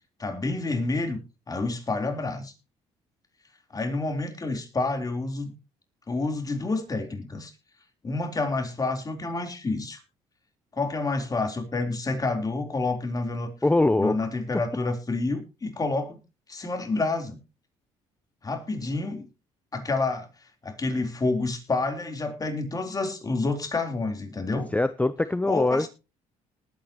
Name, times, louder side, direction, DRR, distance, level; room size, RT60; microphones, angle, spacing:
voice 1, 0.2-1.2 1.5-2.5 3.7-5.5 6.1-7.5 8.0-10.0 10.7-13.5 14.0-16.2 16.5-17.4 18.4-19.3 19.7-20.3 20.6-24.7 25.4-25.9, left 3 dB, 30° left, 5 dB, 3.9 m, -28 dB
voice 2, 13.6-14.2 24.7-25.9, left 2 dB, 10° left, 14 dB, 0.6 m, -22 dB
20.0 x 9.2 x 3.1 m, 0.30 s
supercardioid pair, 75°, 13 cm